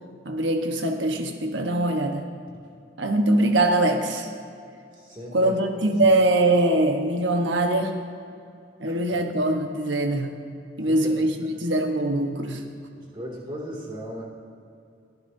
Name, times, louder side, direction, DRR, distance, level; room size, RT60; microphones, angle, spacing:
voice 1, 0.2-2.2 3.0-4.3 5.3-7.9 8.8-10.3 10.8-12.6, right 1 dB, 75° right, 4 dB, 1.2 m, -22 dB
voice 2, 5.0-5.6 5.8-6.1 8.9-9.0 10.8-11.1 12.9-14.2, equal, 25° right, -4 dB, 2.4 m, -37 dB
23.0 x 11.5 x 2.7 m, 2.4 s
head